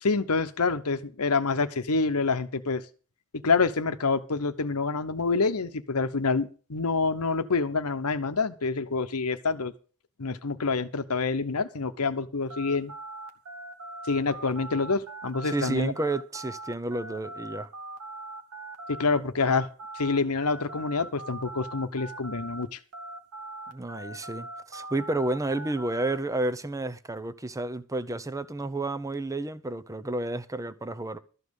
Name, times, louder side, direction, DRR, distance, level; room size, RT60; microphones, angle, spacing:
voice 1, 0.0-2.8 3.4-9.7 10.2-12.9 14.1-15.9 18.9-19.7 19.9-22.8, left 4 dB, 80° left, 1.0 m, -27 dB
sound 1, 12.5-22.6 22.9-26.2, right 2 dB, 80° right, 1.4 m, -41 dB
voice 2, 15.4-17.7 23.7-31.2, right 2 dB, 15° right, 0.7 m, -31 dB
13.0 x 5.4 x 8.1 m
head